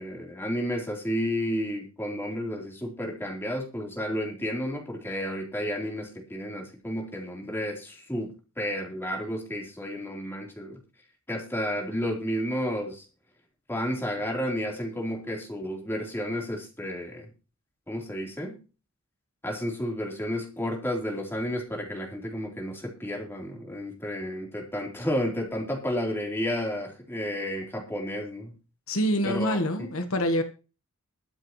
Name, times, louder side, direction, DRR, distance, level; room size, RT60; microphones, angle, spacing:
voice 1, 0.0-8.3 8.6-10.8 11.3-13.1 13.7-17.3 17.9-18.5 19.4-28.5 29.2-29.9, equal, 10° left, 3.9 m, -31 dB
voice 2, 28.9-30.4, equal, 70° left, 1.4 m, -26 dB
23.0 x 8.0 x 3.2 m
head